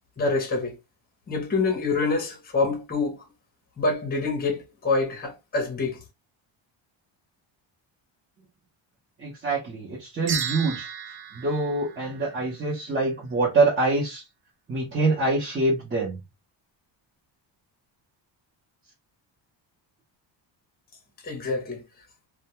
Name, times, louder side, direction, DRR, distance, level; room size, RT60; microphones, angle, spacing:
voice 1, 0.2-0.8 1.3-3.2 3.8-6.0 21.2-21.8, left 3 dB, 20° left, 0.7 m, -26 dB
voice 2, 9.2-10.9 11.3-14.2 14.7-16.2, right 3 dB, 25° right, 0.7 m, -25 dB
sound 1, 10.3-12.7, right 7 dB, 55° right, 0.6 m, -34 dB
2.2 x 2.2 x 2.8 m
cardioid pair, 165°, 46 cm